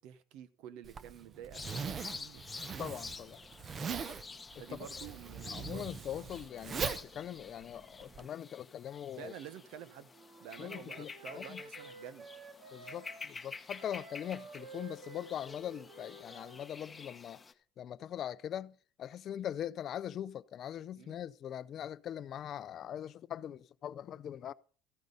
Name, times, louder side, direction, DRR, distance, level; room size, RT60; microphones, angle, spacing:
voice 1, 0.0-2.4 4.6-5.8 9.1-10.1 10.4-12.3 21.0-21.2, right 9 dB, 75° right, 1.0 m, -49 dB
Zipper (clothing), 0.8-8.3, right 6 dB, 35° right, 0.7 m, -41 dB
sound 1, 1.5-17.5, left 4 dB, 20° left, 0.9 m, -49 dB
voice 2, 2.8-3.4 3.8-4.0 4.7-4.8 5.5-9.3 10.6-11.6 12.7-17.4 17.8-24.5, left 10 dB, 45° left, 0.5 m, -42 dB
Wind instrument woodwind instrument, 10.1-13.3 13.7-17.1, right 3 dB, 60° right, 2.5 m, -52 dB
14.0 x 9.3 x 4.0 m
cardioid pair, 125°, 0 cm